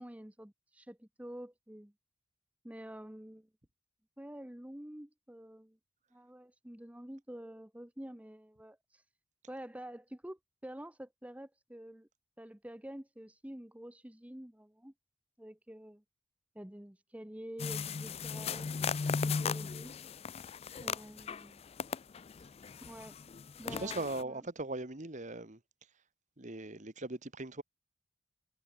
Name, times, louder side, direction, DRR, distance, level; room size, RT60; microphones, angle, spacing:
voice 1, 0.0-1.9 2.6-3.5 4.2-5.8 6.1-9.0 9.5-12.1 12.4-14.9 15.4-16.0 16.5-18.8 19.0-19.9 20.8-21.7 22.8-23.2 23.6-24.4, right 1 dB, 5° right, 0.8 m, -48 dB
sound 1, 17.6-21.5 21.8-24.2, left 5 dB, 30° left, 0.4 m, -37 dB
voice 2, 23.8-25.6 26.4-27.6, right 2 dB, 35° right, 1.6 m, -39 dB
head